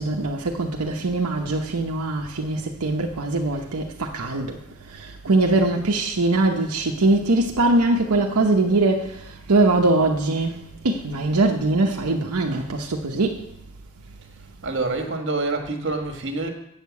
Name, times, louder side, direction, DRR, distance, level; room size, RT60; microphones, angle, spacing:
voice 1, 0.0-13.5, right 2 dB, 85° right, 0.9 m, -22 dB
voice 2, 14.4-16.5, right 3 dB, 55° right, 1.6 m, -27 dB
8.0 x 6.6 x 8.2 m
head